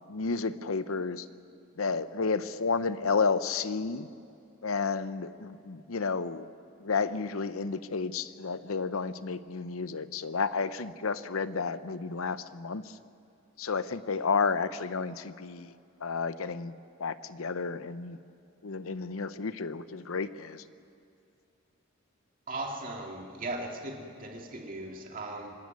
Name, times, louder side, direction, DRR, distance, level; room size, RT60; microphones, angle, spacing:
voice 1, 0.1-1.2 1.8-4.1 4.6-6.5 6.8-12.8 13.6-15.7 16.0-16.7 17.0-18.2 18.6-20.6, left 4 dB, 85° left, 14 dB, 0.7 m, -31 dB
voice 2, 22.5-25.5, right 2 dB, 40° right, 0 dB, 2.3 m, -38 dB
25.0 x 13.0 x 9.5 m, 2.5 s
head